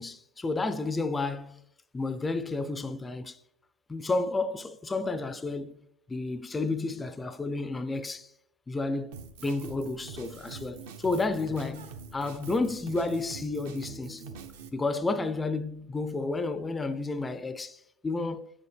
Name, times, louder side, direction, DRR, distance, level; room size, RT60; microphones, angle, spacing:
voice 1, 0.0-1.6 1.9-3.4 3.9-5.8 6.1-8.3 8.7-9.2 9.4-14.2 14.7-18.5, left 3 dB, 10° left, 0.4 m, -31 dB
Drum kit, 9.1-14.7, right 5 dB, 70° right, 0.9 m, -44 dB
8.7 x 6.8 x 3.3 m
supercardioid pair, 135°, 0 cm